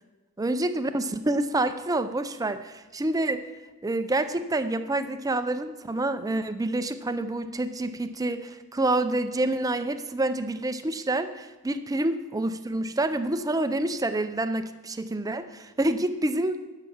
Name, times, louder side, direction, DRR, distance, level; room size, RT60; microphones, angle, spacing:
voice 1, 0.4-3.4 3.8-16.6, right 2 dB, 15° right, 10 dB, 0.5 m, -27 dB
12.0 x 5.8 x 7.1 m, 1.2 s
head